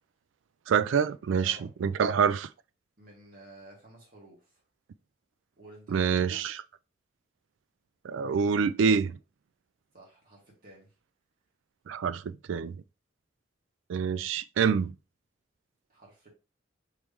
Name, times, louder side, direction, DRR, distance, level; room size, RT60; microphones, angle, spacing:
voice 1, 0.7-2.5 5.9-6.6 8.0-9.2 11.9-12.8 13.9-14.9, right 6 dB, 90° right, 0.3 m, -26 dB
voice 2, 1.4-2.3 3.0-4.6 5.6-6.1 9.9-10.9 15.9-16.3, right 1 dB, 50° right, 2.0 m, -53 dB
4.8 x 3.1 x 3.4 m
head